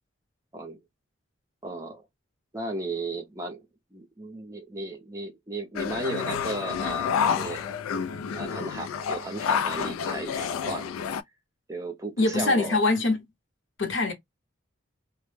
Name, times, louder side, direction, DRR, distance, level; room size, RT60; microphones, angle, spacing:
voice 1, 1.6-2.0 2.5-3.6 3.9-7.7 8.3-10.9 11.7-12.8, right 2 dB, 15° right, 0.5 m, -35 dB
sound 1, 5.8-11.2, left 7 dB, 85° left, 0.3 m, -29 dB
voice 2, 12.2-13.2 13.8-14.1, left 2 dB, 65° left, 0.7 m, -23 dB
2.0 x 2.0 x 3.1 m
head